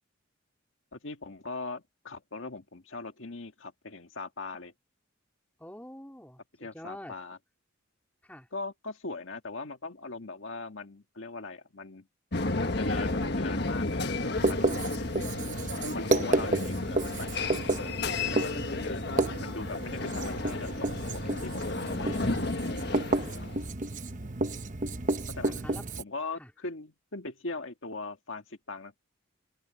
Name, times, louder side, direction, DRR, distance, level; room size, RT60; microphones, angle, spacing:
voice 1, 0.9-4.7 6.6-7.4 8.5-12.1 12.6-14.8 15.9-22.7 25.3-25.6 26.0-29.0, left 3 dB, 70° left, 1.8 m, -40 dB
voice 2, 5.6-7.1 8.2-8.5 23.2-24.1 25.5-26.0 26.4-26.5, left 1 dB, 5° left, 3.4 m, -47 dB
sound 1, 12.3-23.6, left 2 dB, 55° left, 1.5 m, -32 dB
Writing, 14.4-26.0, right 2 dB, 40° right, 1.0 m, -31 dB
open air
head